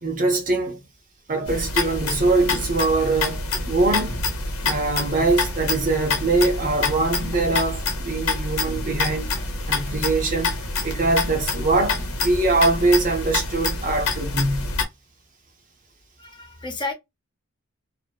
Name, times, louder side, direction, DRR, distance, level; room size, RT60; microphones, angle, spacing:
voice 1, 0.0-0.8 1.3-4.1 4.6-9.3 9.7-10.6 10.8-14.7, right 3 dB, 40° right, 0.7 m, -22 dB
sound 1, 1.5-14.8, left 3 dB, 90° left, 1.1 m, -27 dB
voice 2, 16.2-16.9, left 3 dB, 20° left, 0.6 m, -32 dB
2.7 x 2.0 x 2.3 m
head